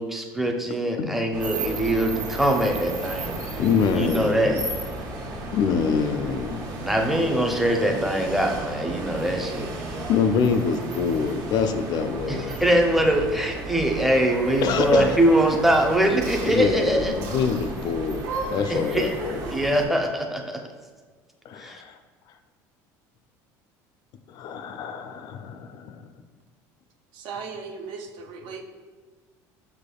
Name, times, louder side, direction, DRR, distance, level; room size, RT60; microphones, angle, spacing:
voice 1, 0.0-3.4 3.9-4.6 6.8-9.8 12.3-17.2 18.7-19.1 19.5-20.6 21.6-21.8, right 1 dB, ahead, 2 dB, 0.6 m, -23 dB
sound 1, 1.3-19.9, right 2 dB, 50° right, 1.0 m, -34 dB
voice 2, 3.6-4.6 5.5-6.7 10.1-12.6 14.6-15.2 16.5-19.4 21.5-22.0 24.3-26.0, left 6 dB, 55° left, 8 dB, 0.4 m, -25 dB
sound 2, 13.9-15.6 16.2-16.6 17.2-17.6 18.1-19.8, right 2 dB, 90° right, 0.9 m, -35 dB
voice 3, 27.1-28.6, right 5 dB, 70° right, 3 dB, 0.6 m, -37 dB
5.9 x 3.4 x 2.3 m, 1.4 s
supercardioid pair, 105°, 8 cm